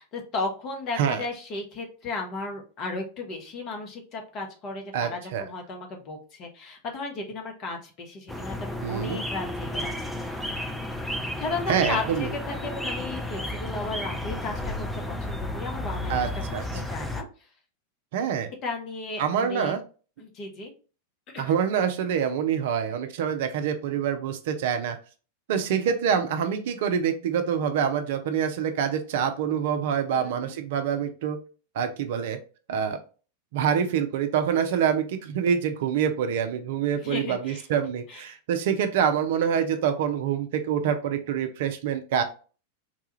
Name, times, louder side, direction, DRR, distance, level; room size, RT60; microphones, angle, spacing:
voice 1, 0.0-10.5 11.4-17.2 18.6-19.7 20.2-20.7 21.3-21.5 30.1-30.6 37.0-37.6 38.1-38.2, left 3 dB, 35° left, 2 dB, 0.9 m, -35 dB
voice 2, 4.9-5.5 8.8-9.2 11.7-12.3 16.1-16.6 18.1-18.5 19.2-19.8 21.4-25.0 25.5-31.4 31.8-32.4 32.7-33.0 33.5-42.2, right 8 dB, 55° right, 7 dB, 0.5 m, -26 dB
sound 1, 8.3-17.2, left 1 dB, ahead, 0.5 m, -32 dB
4.0 x 2.3 x 2.9 m, 0.36 s
figure-of-eight pair, 90°, 0 cm